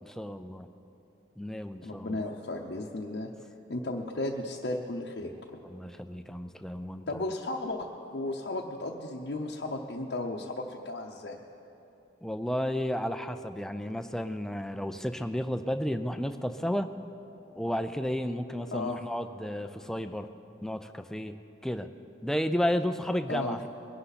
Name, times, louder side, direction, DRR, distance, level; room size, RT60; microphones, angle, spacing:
voice 1, 0.0-0.7 1.4-2.2 5.6-7.2 12.2-16.9 17.5-20.3 20.6-21.4 21.6-21.9 22.2-23.7, equal, 5° left, 9 dB, 0.4 m, -32 dB
voice 2, 1.8-3.3 3.7-5.6 7.1-7.9 8.1-11.4 18.7-19.0 23.3-23.6, left 2 dB, 65° left, -2 dB, 0.8 m, -34 dB
21.0 x 11.5 x 4.1 m, 2.9 s
head